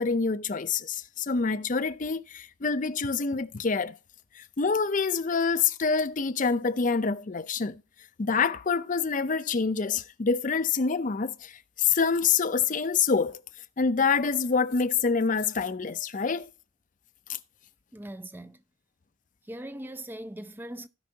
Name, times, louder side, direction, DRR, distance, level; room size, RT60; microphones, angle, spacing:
voice 1, 0.0-4.0 4.3-7.8 8.2-13.4 13.8-16.5 17.3-17.4, left 5 dB, 40° left, 0.5 m, -26 dB
voice 2, 17.9-18.6 19.5-20.9, right 1 dB, 10° right, 0.4 m, -40 dB
16.5 x 5.5 x 2.8 m
head